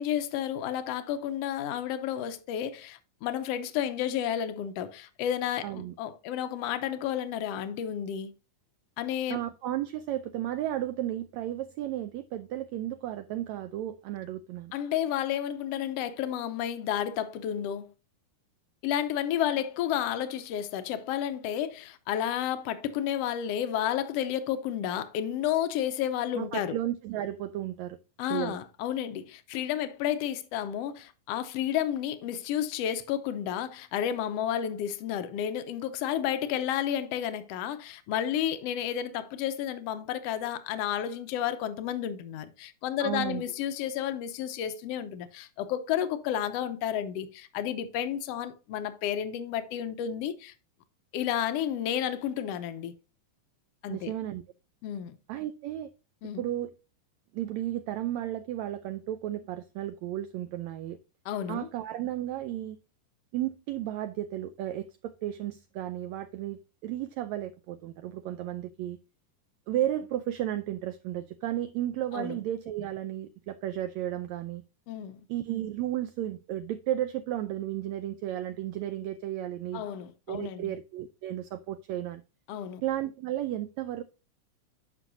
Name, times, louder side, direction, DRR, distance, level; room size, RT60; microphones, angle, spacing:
voice 1, 0.0-8.3 9.0-9.4 14.7-17.9 18.8-26.8 28.2-50.5 51.1-52.9 53.8-54.1 54.8-55.1 56.2-56.5 61.2-61.7 72.1-72.4 74.9-75.3 79.7-80.7 82.5-82.8, left 10 dB, 80° left, 1.4 m, -31 dB
voice 2, 5.6-5.9 9.3-14.7 26.3-28.0 28.3-28.6 43.0-43.4 53.9-54.4 55.3-55.9 56.4-56.7 57.3-61.0 61.5-62.8 63.3-69.0 69.7-74.6 75.3-79.8 80.3-82.2 82.8-84.0, right 12 dB, 85° right, 1.6 m, -33 dB
9.6 x 6.1 x 2.6 m
omnidirectional pair, 3.8 m